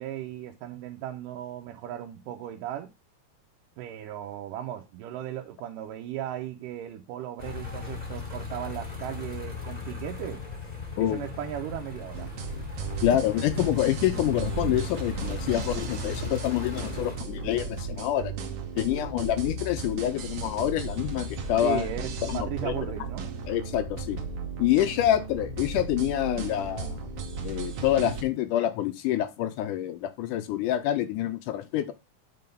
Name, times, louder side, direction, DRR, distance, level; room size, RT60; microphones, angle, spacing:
voice 1, 0.0-2.9 3.8-10.4 11.0-12.3 21.6-23.3, right 11 dB, 80° right, 2.2 m, -36 dB
sound 1, 7.4-17.2, left 5 dB, 30° left, 0.7 m, -38 dB
sound 2, 12.1-28.2, right 4 dB, 65° right, 1.5 m, -35 dB
voice 2, 13.0-18.3 18.8-21.9 22.3-22.9 23.5-24.2 24.6-27.0 27.4-31.9, left 12 dB, 80° left, 2.1 m, -27 dB
7.6 x 3.9 x 5.1 m
omnidirectional pair, 3.9 m